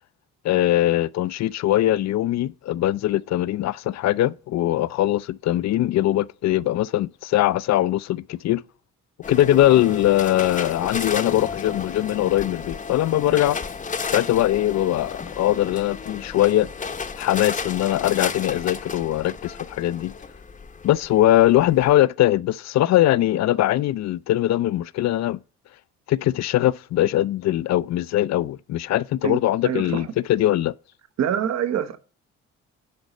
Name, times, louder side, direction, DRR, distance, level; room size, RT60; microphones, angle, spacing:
voice 1, 0.4-8.6 9.3-13.6 14.1-16.7 17.2-20.1 20.8-25.4 26.1-30.7, left 14 dB, 60° left, 0.4 m, -21 dB
sound 1, 9.2-21.9, left 5 dB, 25° left, 0.7 m, -33 dB
voice 2, 29.6-30.0 31.2-32.0, right 9 dB, 60° right, 0.9 m, -25 dB
11.0 x 4.0 x 5.3 m
cardioid pair, 90°, 30 cm